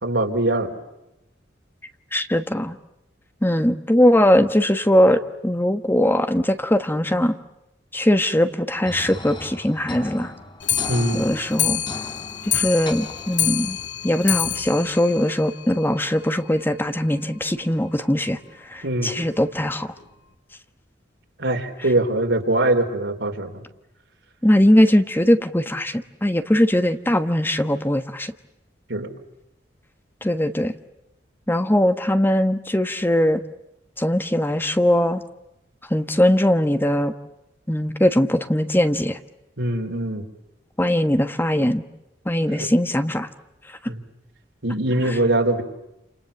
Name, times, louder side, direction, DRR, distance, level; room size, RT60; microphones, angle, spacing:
voice 1, 0.0-0.7 10.9-11.3 18.8-19.1 21.4-23.6 28.9-29.1 39.6-40.3 42.6-42.7 43.9-44.0 44.6-45.6, right 1 dB, 90° right, 3 dB, 4.1 m, -22 dB
voice 2, 2.1-2.8 3.4-7.3 7.9-10.3 11.1-11.8 12.5-13.8 14.0-18.4 18.7-19.9 24.4-28.3 30.2-30.7 31.5-33.4 34.0-35.2 35.9-37.1 37.7-39.2 40.8-41.8 42.2-43.3 45.0-45.1, left 1 dB, 10° left, 9 dB, 1.2 m, -20 dB
sound 1, 8.9-13.9, left 2 dB, 30° left, 3.1 m, -38 dB
Clock, 10.6-16.1 16.4-16.5 16.8-16.9 17.2-17.3 17.6-17.7 18.4-18.5 19.2-19.3 20.0-20.1, left 10 dB, 80° left, 2.3 m, -27 dB
29.0 x 28.5 x 7.2 m, 0.89 s
head